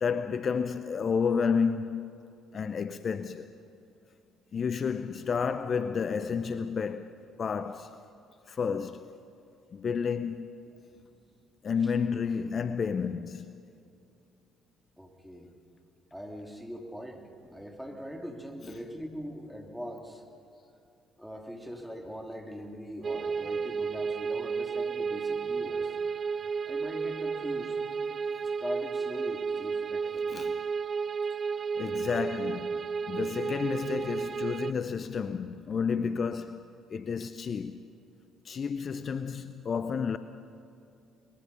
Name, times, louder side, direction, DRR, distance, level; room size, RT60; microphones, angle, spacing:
voice 1, 0.0-2.1 2.5-3.5 4.5-7.1 7.4-8.0 8.5-9.1 9.7-10.5 11.6-13.5 18.6-18.8 30.3-30.6 31.8-37.8 38.4-40.2, left 6 dB, 45° left, 0.7 m, -31 dB
voice 2, 15.0-15.5 16.1-20.2 21.2-26.0 26.7-27.8 28.4-30.3, equal, ahead, 3.3 m, -41 dB
sound 1, 23.0-34.7, right 5 dB, 40° right, 0.6 m, -32 dB
22.5 x 21.5 x 5.6 m
hypercardioid pair, 50°, 0 cm